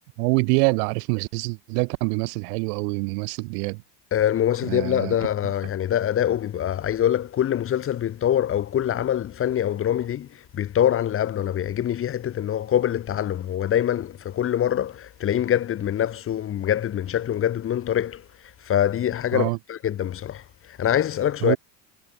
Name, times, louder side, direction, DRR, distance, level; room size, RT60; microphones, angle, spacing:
voice 1, 0.2-3.8 4.7-5.1 19.3-19.6 21.4-21.6, right 32 dB, 80° right, 4.2 m, -25 dB
voice 2, 4.1-18.2 18.6-21.6, left 10 dB, 30° left, 2.4 m, -24 dB
cardioid pair, 170°, 46 cm